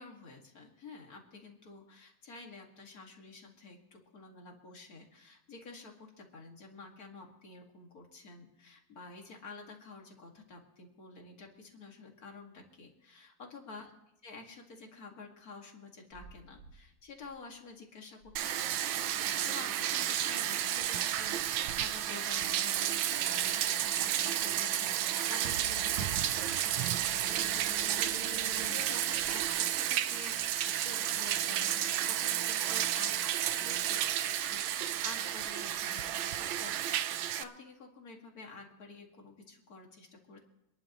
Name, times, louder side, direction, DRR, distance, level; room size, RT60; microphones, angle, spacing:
voice 1, 0.0-13.9 14.2-33.1 33.5-40.4, left 3 dB, 45° left, 1 dB, 2.3 m, -50 dB
sound 1, 16.1-16.8 17.1-17.7 18.2-18.3 18.7-21.0 21.5-21.6 22.1-29.6 30.0-30.1, left 1 dB, 45° right, 2.3 m, -51 dB
Bathtub (filling or washing), 18.4-37.4, right 11 dB, 75° right, 1.4 m, -32 dB
26.0 x 11.0 x 3.0 m, 0.93 s
omnidirectional pair, 2.4 m